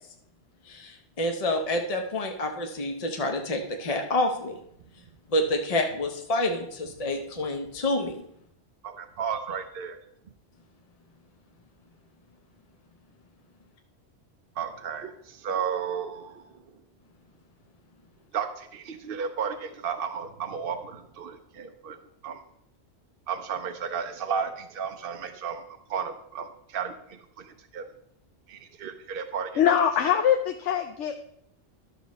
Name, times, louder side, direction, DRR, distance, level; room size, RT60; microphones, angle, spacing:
voice 1, 0.7-4.6 5.3-8.2, left 1 dB, 35° left, 3 dB, 0.8 m, -28 dB
voice 2, 8.8-10.0 14.6-16.4 18.3-22.0 22.2-22.4 23.3-25.6 25.9-27.8 28.5-29.8, right 7 dB, 60° right, 6 dB, 0.8 m, -33 dB
voice 3, 29.6-31.2, left 9 dB, 85° left, 6 dB, 0.9 m, -23 dB
11.5 x 6.4 x 4.1 m, 0.74 s
omnidirectional pair, 1.2 m